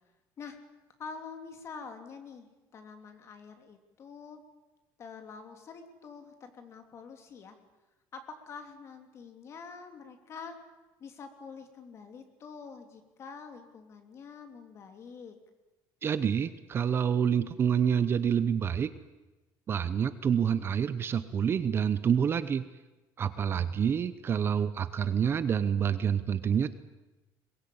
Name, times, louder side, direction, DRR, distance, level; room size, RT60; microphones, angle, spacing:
voice 1, 1.0-4.4 5.0-7.6 8.1-10.6 11.0-15.3, left 5 dB, 35° left, 6 dB, 3.1 m, -46 dB
voice 2, 16.0-18.9 19.7-22.7 23.2-26.7, right 8 dB, 30° right, 13 dB, 0.8 m, -27 dB
22.5 x 21.5 x 8.7 m, 1.1 s
cardioid pair, 160°, 8 cm